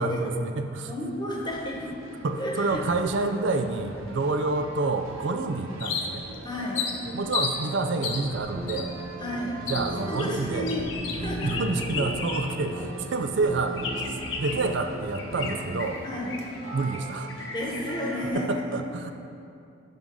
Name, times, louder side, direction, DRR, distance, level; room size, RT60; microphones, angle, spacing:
voice 1, 0.0-0.9 2.2-6.2 7.1-8.9 9.6-10.7 11.4-13.8 14.4-16.0 16.7-17.3 18.3-19.1, right 3 dB, 60° right, 7 dB, 0.4 m, -28 dB
sound 1, 0.6-18.3, right 2 dB, 85° right, 0.9 m, -43 dB
voice 2, 0.8-2.0 2.3-2.8 6.4-6.9 9.2-9.6 9.8-11.5 16.0-16.3 17.5-18.8, left 1 dB, 20° left, -2 dB, 1.1 m, -32 dB
sound 2, 5.8-6.3 6.7-7.6 8.0-8.2 8.7-8.8 9.7-9.8 10.2-12.7 13.0-13.1 13.8-14.7 15.1-16.6 16.9-17.0 17.3-18.2, left 5 dB, 70° left, 0.9 m, -33 dB
sound 3, 8.0-10.2 10.5-14.9 15.3-15.9, right 1 dB, 25° right, 0.7 m, -36 dB
10.5 x 3.7 x 5.4 m, 2.5 s
head